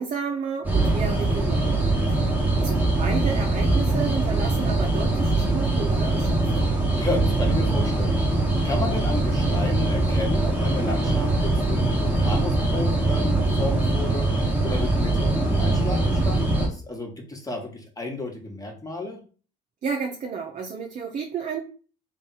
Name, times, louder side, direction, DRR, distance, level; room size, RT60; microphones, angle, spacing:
voice 1, 0.0-1.8 2.1-2.3 2.6-6.5 19.8-21.6, right 6 dB, 40° right, 1 dB, 0.8 m, -31 dB
sound 1, 0.6-16.7, right 2 dB, 5° right, 1.3 m, -22 dB
voice 2, 2.5-2.9 7.0-8.2 8.6-19.2, left 2 dB, 15° left, 1 dB, 1.4 m, -32 dB
3.4 x 2.5 x 4.1 m, 0.38 s
hypercardioid pair, 70°, 20 cm